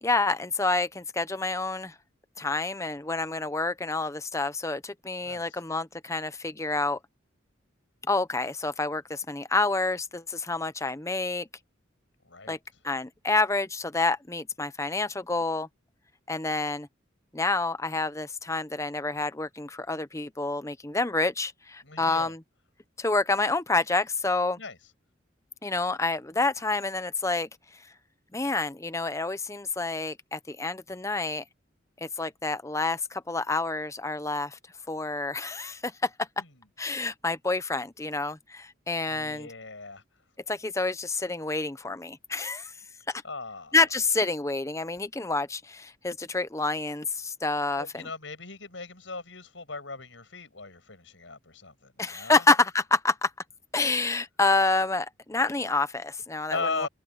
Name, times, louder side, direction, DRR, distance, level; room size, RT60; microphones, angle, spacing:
voice 1, 0.0-1.9 2.4-7.0 8.1-11.5 12.5-12.6 12.8-15.7 16.3-16.9 17.3-22.4 23.0-24.6 25.6-27.5 28.3-31.4 32.0-34.6 34.9-36.3 36.8-39.5 40.5-42.7 43.1-43.2 43.7-48.1 52.0-53.3 53.7-56.9, left 3 dB, 15° left, 0.8 m, -28 dB
voice 2, 12.2-12.6 21.8-22.3 24.6-24.8 36.4-36.5 39.1-40.0 43.2-43.8 47.7-52.4 56.5-56.9, left 3 dB, 80° left, 6.5 m, -38 dB
head